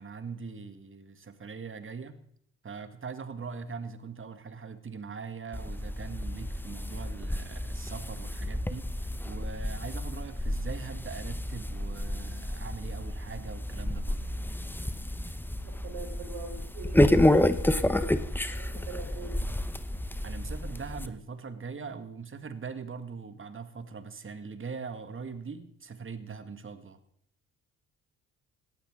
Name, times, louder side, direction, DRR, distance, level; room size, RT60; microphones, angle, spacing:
voice 1, 0.0-2.2 2.6-8.9 9.2-14.3 20.2-27.0, right 5 dB, 30° right, 2.0 m, -41 dB
sound 1, 5.5-21.1, left 1 dB, 5° left, 1.1 m, -30 dB
voice 2, 15.6-19.4, right 4 dB, 65° right, 4.1 m, -43 dB
18.0 x 18.0 x 3.8 m
figure-of-eight pair, 45°, 39 cm